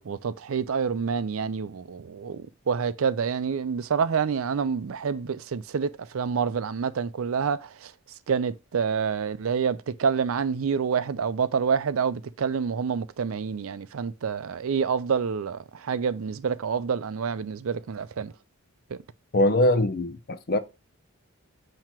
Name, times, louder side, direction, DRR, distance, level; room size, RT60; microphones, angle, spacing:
voice 1, 0.0-7.9 8.3-18.3, right 6 dB, 75° right, 0.4 m, -27 dB
voice 2, 19.3-20.6, left 1 dB, 45° left, 0.6 m, -22 dB
7.4 x 2.9 x 4.4 m
head